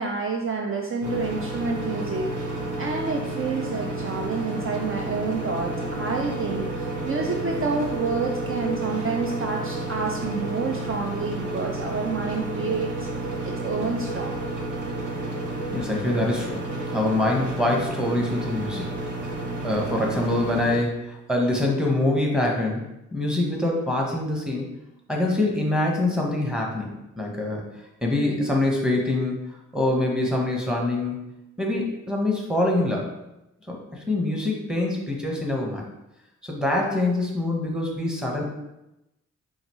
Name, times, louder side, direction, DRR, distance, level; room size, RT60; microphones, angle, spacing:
voice 1, 0.0-2.3 2.8-13.1 13.4-14.4, right 4 dB, 45° right, 1 dB, 0.5 m, -28 dB
sound 1, 1.0-20.8, right 2 dB, 75° right, 1.1 m, -31 dB
voice 2, 15.7-18.9 19.6-22.8 23.1-24.7 25.1-27.7 28.0-31.3 31.6-33.1 33.7-35.8 36.4-38.4, left 2 dB, ahead, -1 dB, 1.1 m, -25 dB
4.9 x 2.6 x 3.0 m, 0.92 s
cardioid pair, 55°, 32 cm